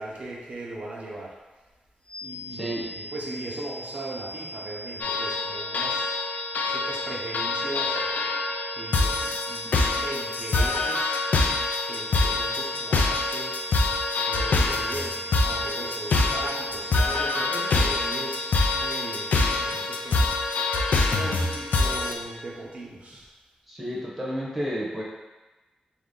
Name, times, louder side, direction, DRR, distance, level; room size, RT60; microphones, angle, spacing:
voice 1, 0.0-1.3 2.2-6.1 6.6-8.0 8.7-11.3 11.8-13.6 14.3-20.6 21.1-23.3, right 2 dB, 55° right, -4 dB, 0.8 m, -38 dB
sound 1, 2.1-19.8, right 1 dB, 30° left, 0.6 m, -39 dB
voice 2, 2.5-2.9 23.7-25.0, equal, 5° right, -5 dB, 0.8 m, -31 dB
sound 2, 5.0-22.1, left 3 dB, 80° left, 0.4 m, -25 dB
4.0 x 2.7 x 3.7 m, 1.2 s
wide cardioid pair, 135°, 3 cm